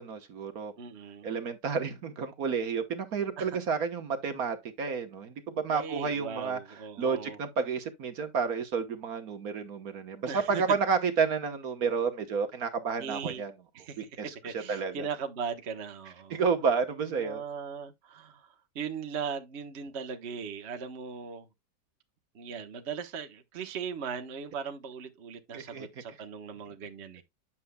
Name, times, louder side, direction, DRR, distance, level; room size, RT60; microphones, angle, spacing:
voice 1, 0.0-0.7 1.2-6.6 7.0-13.5 14.2-15.0 16.3-17.4 25.5-25.9, right 5 dB, 60° right, 1.6 m, -30 dB
voice 2, 0.8-1.3 3.4-3.6 5.7-7.4 10.2-10.6 13.0-13.4 13.7-14.1 14.4-16.4 17.1-21.5 22.3-27.2, right 6 dB, 45° right, 1.2 m, -38 dB
9.8 x 7.5 x 2.2 m
omnidirectional pair, 1.8 m